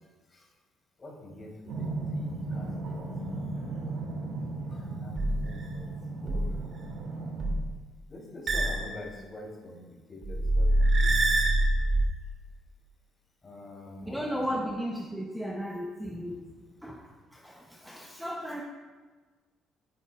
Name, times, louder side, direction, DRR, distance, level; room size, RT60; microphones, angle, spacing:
voice 1, 1.0-1.5 1.8-3.5 4.7-5.9 6.2-6.4 8.1-9.8 10.1-11.4 13.4-14.5, left 1 dB, 25° left, -3 dB, 3.3 m, -45 dB
sound 1, 1.7-7.5, right 2 dB, 85° right, 2.1 m, -36 dB
sound 2, 5.2-5.6 6.3-6.6 7.4-7.7 8.5-8.9 10.2-12.0, right 1 dB, 40° right, 2.6 m, -25 dB
voice 2, 14.1-16.4 16.8-17.0 17.3-18.6, equal, ahead, -1 dB, 0.8 m, -35 dB
12.5 x 10.0 x 2.4 m, 1.3 s
cardioid pair, 135°, 0 cm